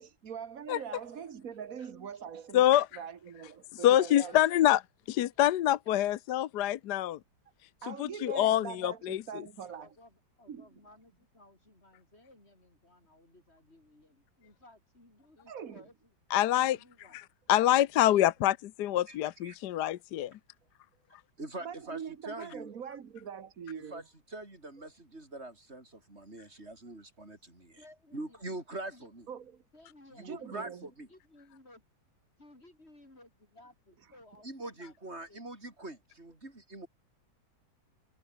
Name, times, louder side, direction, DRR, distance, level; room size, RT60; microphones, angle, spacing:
voice 1, 0.0-2.7 3.0-4.3 7.8-9.9 10.5-10.8 15.5-15.8 21.6-24.0 29.3-29.6 30.2-30.9, right 7 dB, 45° right, 1.7 m, -42 dB
voice 2, 1.8-2.2 4.2-4.4 9.8-16.1 16.6-17.2 18.1-18.3 27.8-29.1 29.7-31.8 32.4-35.4, left 1 dB, 30° left, 7.2 m, -58 dB
voice 3, 2.5-2.9 3.8-4.8 5.1-7.2 7.8-9.5 16.3-16.8 17.1-20.3, left 13 dB, 65° left, 1.2 m, -26 dB
voice 4, 21.4-22.0 22.3-22.7 23.9-24.0 24.3-27.8 28.1-29.3 30.1-31.1 34.4-36.9, right 2 dB, 30° right, 5.6 m, -43 dB
omnidirectional pair, 2.1 m